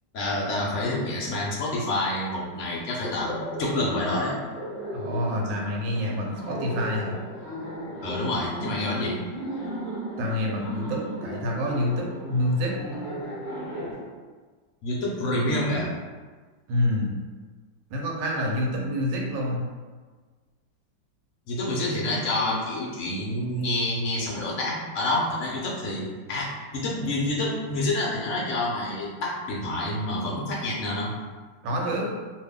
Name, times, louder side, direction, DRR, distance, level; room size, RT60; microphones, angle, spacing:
voice 1, 0.1-4.3 8.0-9.2 14.8-15.9 21.5-31.1, left 1 dB, 65° left, -4 dB, 0.7 m, -28 dB
Laughter, 3.0-13.9, equal, 15° left, 0.8 m, -35 dB
voice 2, 4.9-7.2 10.2-12.7 16.7-17.2 17.9-19.7 31.6-32.1, left 1 dB, 80° right, -1 dB, 1.3 m, -27 dB
2.7 x 2.6 x 3.5 m, 1.4 s
omnidirectional pair, 1.9 m